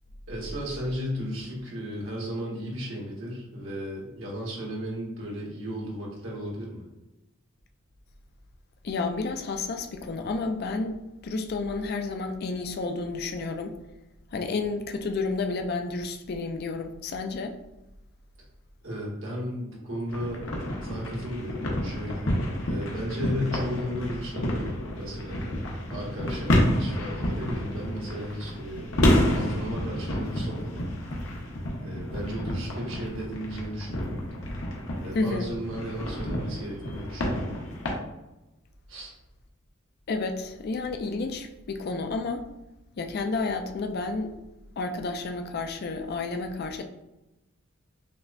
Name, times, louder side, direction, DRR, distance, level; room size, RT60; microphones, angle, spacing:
voice 1, 0.3-6.9 18.8-20.4 20.8-25.4 25.9-28.9 29.3-30.8 31.8-34.2 35.0-37.4 38.9-39.1, equal, 70° right, -3 dB, 1.2 m, -35 dB
voice 2, 8.8-13.8 14.3-17.5 35.1-35.5 40.1-42.5 43.0-44.3 44.8-46.8, left 3 dB, 50° left, 5 dB, 0.4 m, -31 dB
sound 1, 20.1-37.9, left 1 dB, 70° left, 0.8 m, -29 dB
5.8 x 2.1 x 2.4 m, 0.99 s
head